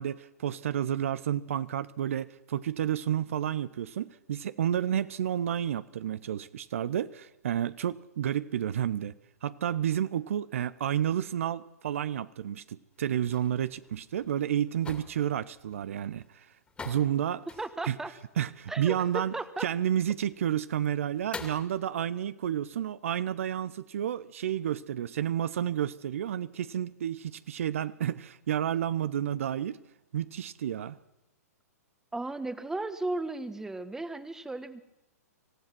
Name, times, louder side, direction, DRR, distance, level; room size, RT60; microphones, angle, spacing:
voice 1, 0.0-9.1 9.4-16.5 16.8-17.5 17.8-18.0 18.4-19.3 19.6-29.8 30.1-31.0, right 10 dB, 55° right, 16 dB, 0.8 m, -30 dB
sound 1, 12.9-21.7, left 4 dB, 10° left, 2.5 m, -48 dB
voice 2, 17.6-18.1 18.7-19.7 32.1-34.8, right 2 dB, 5° right, 12 dB, 1.4 m, -35 dB
26.5 x 16.0 x 6.2 m, 0.93 s
figure-of-eight pair, 115°, 9 cm